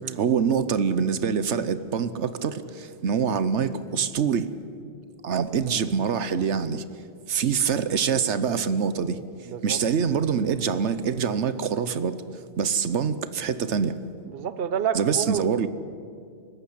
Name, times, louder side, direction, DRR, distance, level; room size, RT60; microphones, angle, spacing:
voice 1, 0.2-4.5 5.2-6.8 7.3-9.2 9.6-12.2 12.6-14.0 14.9-15.7, right 6 dB, 85° right, 13 dB, 1.2 m, -25 dB
voice 2, 9.5-9.8 14.3-15.4, right 8 dB, 60° right, 13 dB, 1.0 m, -29 dB
24.5 x 14.5 x 9.9 m, 2.4 s
omnidirectional pair, 1.2 m